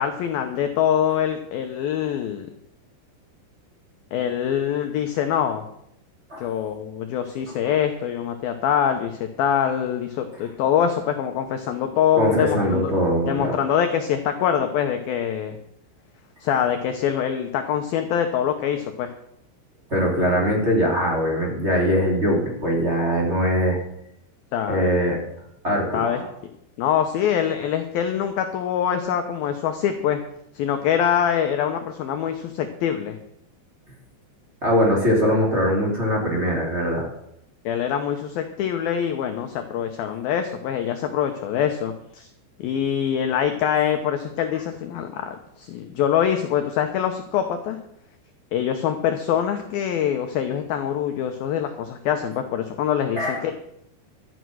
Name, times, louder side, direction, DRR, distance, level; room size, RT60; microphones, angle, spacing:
voice 1, 0.0-2.5 4.1-5.6 6.4-13.0 13.2-15.6 16.4-19.1 24.5-24.9 25.9-26.2 26.8-30.2 30.5-33.2 37.7-42.3 42.6-47.8 48.5-53.5, left 9 dB, 80° left, 6 dB, 2.1 m, -24 dB
voice 2, 12.2-13.5 19.9-23.8 24.7-25.2 25.6-26.2 34.6-37.1 53.2-53.4, equal, 20° right, -1 dB, 2.2 m, -21 dB
13.0 x 9.3 x 6.3 m, 0.75 s
omnidirectional pair, 5.4 m